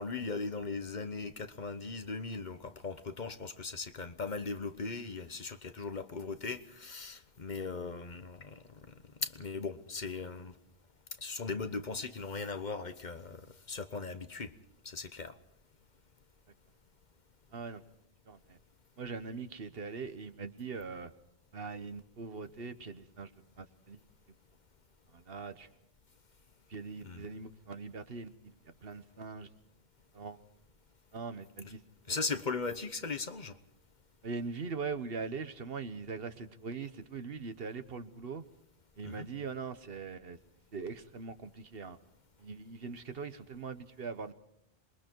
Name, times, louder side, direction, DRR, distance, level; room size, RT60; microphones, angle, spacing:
voice 1, 0.0-8.6 9.2-10.5 11.2-13.4 13.7-14.5 14.8-15.4 27.0-27.3 31.6-31.7 32.1-33.6 39.0-39.3, left 4 dB, 50° left, 1.1 m, -38 dB
voice 2, 17.5-17.8 18.3-18.6 19.0-21.1 21.5-23.3 23.6-24.0 25.1-25.7 26.7-29.5 30.1-30.4 31.1-31.8 32.1-32.2 34.2-38.4 39.0-40.4 40.7-42.0 42.4-44.3, right 4 dB, 70° right, 1.4 m, -41 dB
27.0 x 22.0 x 4.6 m
omnidirectional pair, 1.0 m